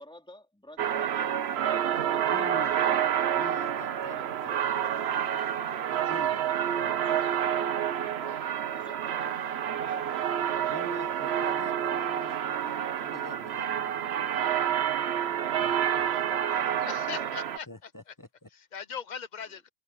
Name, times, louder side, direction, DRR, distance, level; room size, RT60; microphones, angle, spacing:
voice 1, 0.0-3.0 4.1-5.3 6.3-7.4 7.7-9.3 9.6-10.7 10.9-11.8 14.1-14.5 15.4-17.5 19.5-19.6, left 1 dB, 5° left, 3.4 m, -51 dB
sound 1, 0.8-17.6, right 9 dB, 85° right, 1.0 m, -28 dB
voice 2, 2.3-2.7 3.3-4.2 4.5-4.8 5.9-6.4 6.8-7.0 10.7-14.1 15.6-15.8 17.7-18.5, left 1 dB, 20° left, 1.0 m, -44 dB
voice 3, 16.9-17.9 18.5-19.7, left 7 dB, 50° left, 0.9 m, -39 dB
omnidirectional pair, 1.0 m